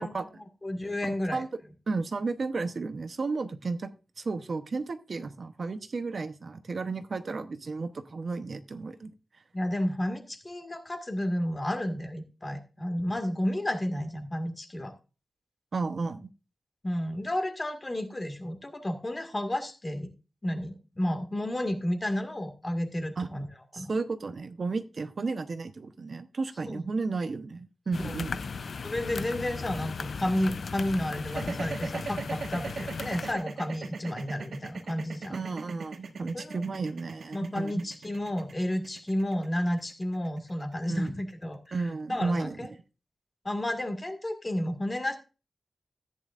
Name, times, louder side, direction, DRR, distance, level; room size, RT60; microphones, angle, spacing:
voice 1, 0.0-1.4 9.5-14.9 16.8-20.1 20.4-23.5 23.7-23.9 26.7-26.8 28.0-28.1 28.8-35.4 36.3-36.6 37.3-42.7 43.4-45.2, left 1 dB, 20° left, 7 dB, 1.9 m, -32 dB
voice 2, 1.9-3.9 4.2-9.1 15.7-16.3 23.2-23.3 23.7-28.4 35.3-37.8 40.9-41.1 41.7-42.6, right 4 dB, 50° right, 9 dB, 0.8 m, -33 dB
sound 1, 27.9-33.3, left 5 dB, 65° left, 0.5 m, -36 dB
sound 2, 31.2-41.4, right 4 dB, 75° right, 1.4 m, -39 dB
14.5 x 9.7 x 2.5 m, 0.31 s
wide cardioid pair, 140°, 0 cm